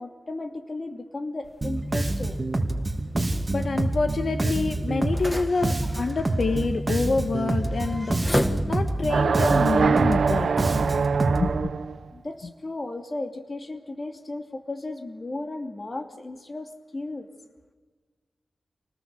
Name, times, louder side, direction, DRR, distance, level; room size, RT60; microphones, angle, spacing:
voice 1, 0.0-2.4 12.1-17.3, left 2 dB, 35° left, 4 dB, 2.6 m, -35 dB
sound 1, 1.4-9.2, equal, 10° left, 1.6 m, -35 dB
Bass guitar, 1.6-11.5, right 2 dB, 25° right, 2.5 m, -27 dB
voice 2, 3.5-8.2 8.6-11.7, left 3 dB, 60° left, 5 dB, 1.4 m, -27 dB
sound 2, 9.1-12.0, right 5 dB, 90° right, 0.8 m, -23 dB
28.0 x 19.5 x 6.9 m, 1.4 s
wide cardioid pair, 95°, 0 cm